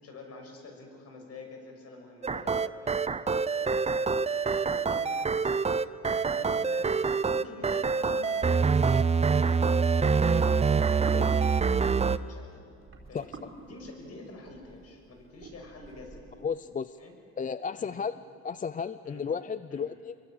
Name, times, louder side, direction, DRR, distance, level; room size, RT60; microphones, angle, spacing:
voice 1, 0.0-5.9 6.3-7.0 7.3-12.6 13.1-13.3 13.6-16.3 17.0-17.1 17.8-18.0 19.0-19.2 19.7-19.8, left 2 dB, 55° left, 2 dB, 6.6 m, -47 dB
sound 1, 2.2-12.2, right 5 dB, 20° right, 0.6 m, -25 dB
sound 2, 10.7-16.5, right 3 dB, 45° right, 4.4 m, -48 dB
voice 2, 16.4-17.0 17.4-18.2 18.4-20.2, left 6 dB, 25° left, 14 dB, 0.5 m, -33 dB
25.5 x 22.5 x 8.9 m, 2.6 s
cardioid pair, 115°, 30 cm